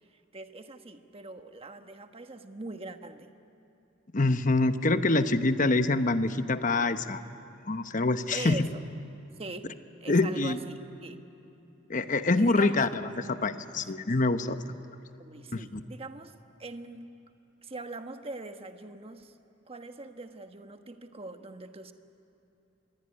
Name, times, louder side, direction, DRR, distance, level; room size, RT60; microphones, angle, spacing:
voice 1, 0.3-3.3 8.3-8.8 9.4-9.7 10.0-11.2 12.3-12.8 15.2-16.3 16.6-17.0 17.6-19.3 19.7-21.9, right 2 dB, 30° right, 7 dB, 1.2 m, -42 dB
voice 2, 4.1-7.2 7.7-8.7 10.1-10.6 11.9-14.6 15.5-15.8, left 2 dB, 40° left, 10 dB, 1.0 m, -25 dB
26.5 x 21.5 x 9.8 m, 2.9 s
head